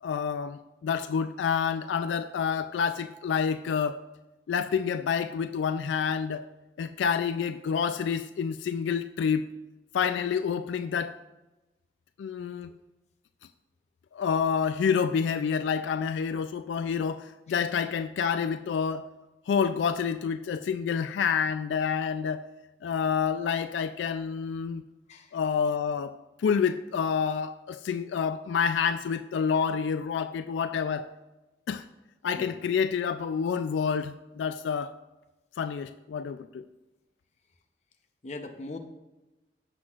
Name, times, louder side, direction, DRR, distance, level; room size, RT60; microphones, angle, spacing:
voice 1, 0.0-4.0 4.5-6.4 6.8-9.4 9.9-11.2 12.2-12.7 14.1-19.1 19.5-22.4 22.8-24.8 25.3-31.1 31.7-31.9 32.2-34.9 35.6-36.6, left 6 dB, 80° left, 10 dB, 0.3 m, -28 dB
voice 2, 38.2-38.8, left 2 dB, 40° left, 5 dB, 0.7 m, -41 dB
13.5 x 6.1 x 2.4 m, 1.0 s
head